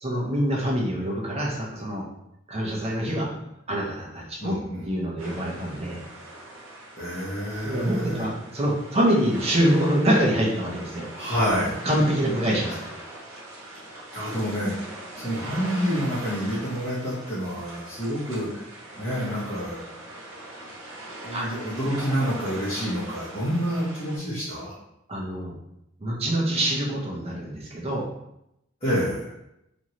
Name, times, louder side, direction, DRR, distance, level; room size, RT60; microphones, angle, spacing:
voice 1, 0.0-2.1 2.5-3.3 3.7-4.6 4.8-6.0 7.6-11.1 11.8-12.8 21.3-21.5 25.1-25.5 26.0-28.1, equal, 30° right, -3 dB, 0.6 m, -25 dB
voice 2, 4.4-4.8 6.9-8.2 11.2-11.8 14.1-14.7 15.2-18.7 19.0-19.8 20.6-20.7 21.2-24.7 28.8-29.3, equal, 30° left, -11 dB, 0.9 m, -28 dB
sound 1, 5.2-24.2, right 1 dB, 85° right, 0.8 m, -41 dB
3.0 x 2.5 x 2.9 m, 0.83 s
head